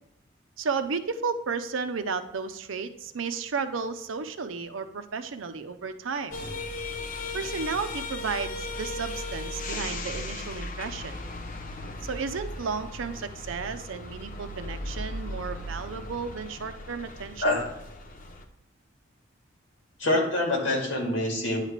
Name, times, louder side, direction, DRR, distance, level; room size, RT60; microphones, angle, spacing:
voice 1, 0.6-6.4 7.3-11.2 12.0-17.6, right 5 dB, 85° right, 10 dB, 0.6 m, -33 dB
sound 1, 6.3-18.4, left 2 dB, 45° left, 0.6 m, -37 dB
voice 2, 20.0-21.6, left 1 dB, 75° left, 0 dB, 2.2 m, -25 dB
9.5 x 3.3 x 6.5 m, 0.83 s
head